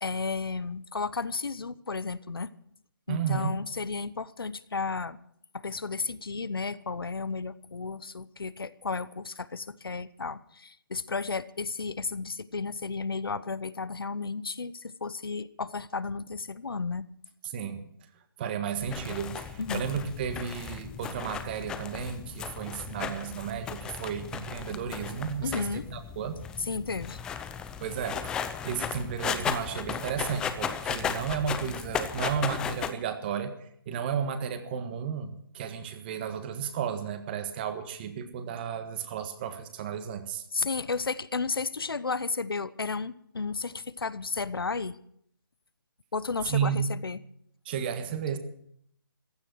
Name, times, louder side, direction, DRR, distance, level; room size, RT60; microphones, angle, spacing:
voice 1, 0.0-2.5 3.1-5.2 5.5-17.0 19.6-19.8 25.4-25.8 26.7-27.2 40.5-45.0 46.1-47.2, left 4 dB, 80° left, 16 dB, 0.9 m, -33 dB
voice 2, 3.1-3.6 17.4-17.8 18.4-26.4 27.8-33.5 33.9-40.4 46.4-46.9 47.6-48.4, right 7 dB, 25° right, 9 dB, 1.5 m, -33 dB
sound 1, 18.8-32.9, left 7 dB, 5° left, 0.5 m, -36 dB
15.5 x 12.0 x 6.2 m, 0.68 s
figure-of-eight pair, 155°, 12 cm